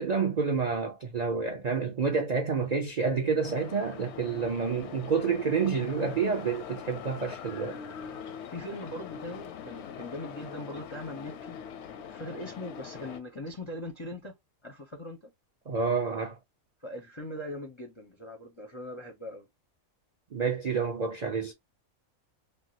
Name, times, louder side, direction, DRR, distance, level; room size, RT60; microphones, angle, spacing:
voice 1, 0.0-7.8 15.7-16.4 20.3-21.5, right 5 dB, 60° right, 0.4 m, -29 dB
sound 1, 3.4-13.2, left 8 dB, 65° left, 0.7 m, -42 dB
voice 2, 8.5-11.6 12.0-14.3 14.6-15.3 16.8-19.5, left 1 dB, 30° left, 0.5 m, -40 dB
3.4 x 2.3 x 2.7 m
omnidirectional pair, 1.4 m